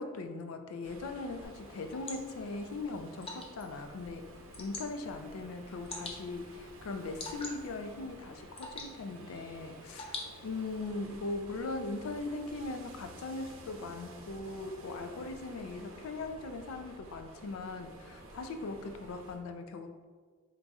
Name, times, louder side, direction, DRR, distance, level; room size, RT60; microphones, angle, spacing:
voice 1, 0.0-4.3 4.6-20.0, left 3 dB, 85° left, 7 dB, 0.4 m, -40 dB
sound 1, 0.8-19.4, right 1 dB, 75° right, 0.6 m, -52 dB
Water / Drip, 1.4-10.8, left 2 dB, 30° left, 0.5 m, -47 dB
3.8 x 2.3 x 4.0 m, 1.5 s
head